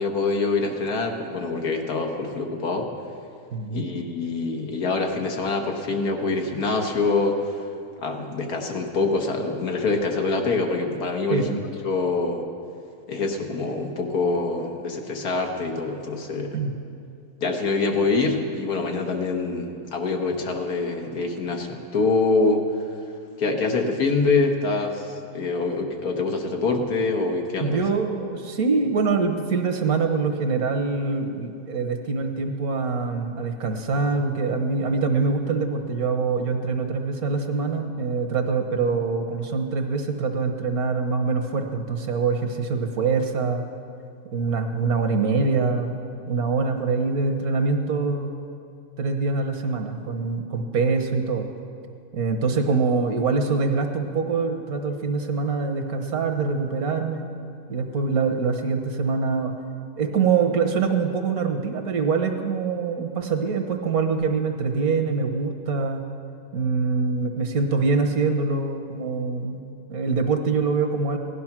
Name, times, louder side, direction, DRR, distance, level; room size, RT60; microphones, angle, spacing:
voice 1, 0.0-2.9 3.7-7.7 8.0-11.6 11.8-12.5 13.1-16.6 17.4-22.6 23.4-27.8, left 3 dB, 75° left, 3 dB, 1.8 m, -25 dB
voice 2, 3.5-3.9 11.3-11.6 16.5-16.7 27.6-43.6 44.3-46.0 46.3-48.3 49.0-51.5 52.1-57.3 57.7-59.5 60.0-66.0 66.5-69.6 69.9-71.2, right 4 dB, 70° right, 5 dB, 1.6 m, -24 dB
17.0 x 11.5 x 6.0 m, 2.5 s
omnidirectional pair, 1.6 m